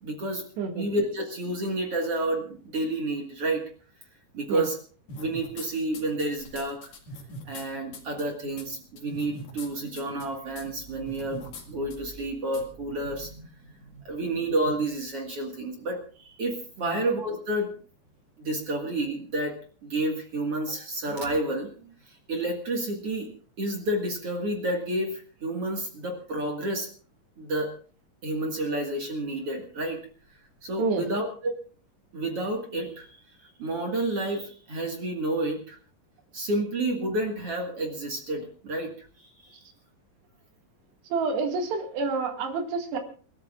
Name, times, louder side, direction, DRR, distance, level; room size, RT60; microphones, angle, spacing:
voice 1, 0.0-0.5 0.7-3.7 4.3-4.8 5.2-6.9 7.5-17.7 18.4-23.3 23.6-26.9 27.4-27.7 28.2-30.0 30.3-31.5 32.1-35.8 36.3-39.6, right 1 dB, 45° right, 2 dB, 2.1 m, -30 dB
sound 1, 5.1-5.7 5.9-7.6 7.9-8.2 8.6-8.7 9.0-9.7 10.0-10.3 10.6-10.7 11.1-11.6 11.9-12.0 12.5-12.6, left 1 dB, 50° left, 3.0 m, -41 dB
voice 2, 41.1-43.0, right 4 dB, 85° right, 4 dB, 4.1 m, -28 dB
28.5 x 13.0 x 2.4 m, 0.41 s
omnidirectional pair, 4.7 m